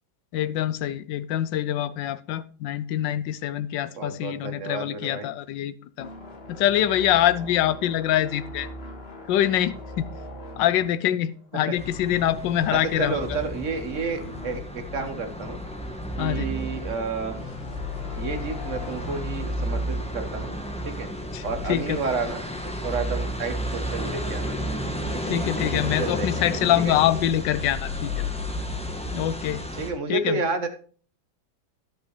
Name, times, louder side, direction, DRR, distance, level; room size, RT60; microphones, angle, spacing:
voice 1, 0.3-6.1 6.5-8.7 9.3-10.1 10.6-13.3 16.2-16.5 21.3-21.4 21.7-22.0 25.2-28.1 29.1-29.6 30.1-30.4, left 12 dB, 75° left, 15 dB, 1.2 m, -24 dB
voice 2, 3.9-5.3 11.7-11.8 12.7-15.6 16.2-17.4 18.2-20.5 20.8-21.1 21.4-22.4 22.8-24.6 25.2-25.3 26.0-26.9 29.8-30.7, right 4 dB, 45° right, 7 dB, 1.2 m, -31 dB
sound 1, 6.0-12.1 12.3-12.6 13.1-14.6 15.1-15.2 17.3-19.2, left 1 dB, 35° left, 1.4 m, -41 dB
sound 2, 11.8-29.9, left 1 dB, 5° left, 0.6 m, -32 dB
11.0 x 8.1 x 3.2 m, 0.42 s
omnidirectional pair, 2.2 m